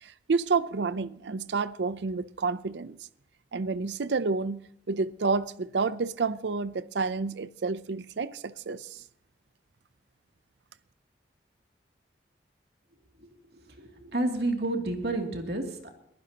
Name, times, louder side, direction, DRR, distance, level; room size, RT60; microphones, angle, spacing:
voice 1, 0.0-3.0 3.5-4.6 4.9-9.0, right 4 dB, 85° right, 0.6 m, -29 dB
voice 2, 13.8-15.9, right 2 dB, 65° right, 2.7 m, -30 dB
22.0 x 15.0 x 2.9 m
head